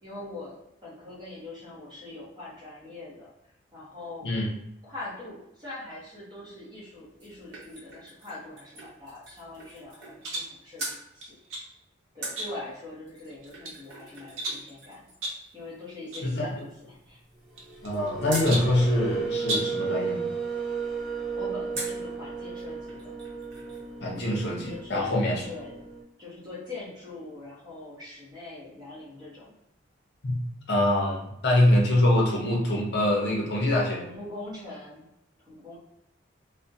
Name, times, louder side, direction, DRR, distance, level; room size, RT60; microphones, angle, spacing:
voice 1, 0.0-3.3 3.7-4.3 4.8-11.3 12.1-15.1 15.5-17.2 21.3-23.1 24.7-25.8 26.2-29.5 34.0-35.0 35.5-35.8, left 2 dB, 20° right, -8 dB, 0.8 m, -42 dB
sound 1, 6.8-10.5 10.8-11.0 12.2-18.6 21.7-22.1 22.6-22.7 22.9-23.9 24.1-24.2, right 2 dB, 55° right, 0.8 m, -43 dB
sound 2, 10.2-10.6 11.2-11.7 12.4-12.8 13.3-13.8 14.4-14.7 15.2-15.5 16.1-16.3 16.6-16.7 17.6-18.1 18.5-18.8 19.4-19.8, right 1 dB, 90° right, 0.6 m, -34 dB
sound 3, 17.6-26.0, right 5 dB, ahead, 0.4 m, -34 dB
voice 2, 17.8-20.3 24.0-25.4 30.2-30.4 30.7-34.1, left 1 dB, 55° left, -2 dB, 0.6 m, -24 dB
2.4 x 2.1 x 2.6 m, 0.79 s
head